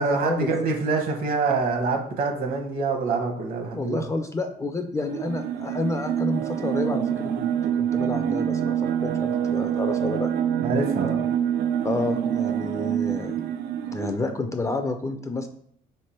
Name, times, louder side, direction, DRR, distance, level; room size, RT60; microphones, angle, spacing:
voice 1, 0.0-4.0 10.6-11.2, right 4 dB, 55° right, 3 dB, 1.0 m, -25 dB
voice 2, 3.7-7.5 7.8-10.3 11.8-13.3 13.9-15.5, left 2 dB, 20° left, 7 dB, 0.4 m, -29 dB
sound 1, 5.0-14.2, right 9 dB, 75° right, 0.4 m, -26 dB
3.4 x 3.3 x 4.3 m, 0.65 s
cardioid pair, 110°, 17 cm